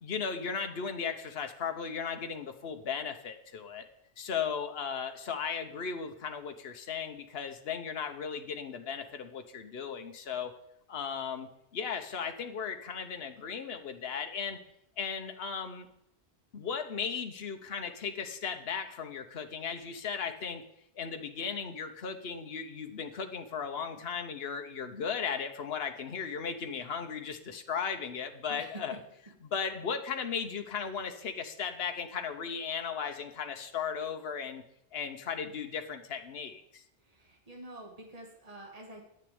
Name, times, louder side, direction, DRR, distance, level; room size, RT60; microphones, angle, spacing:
voice 1, 0.0-3.8 4.2-10.5 10.9-14.6 15.0-15.9 16.5-20.6 20.9-29.0 29.4-34.6 34.9-36.8, left 6 dB, 65° left, 6 dB, 1.2 m, -36 dB
voice 2, 37.0-39.0, right 1 dB, 35° right, 0 dB, 2.2 m, -48 dB
9.9 x 6.7 x 8.7 m, 0.75 s
omnidirectional pair, 1.1 m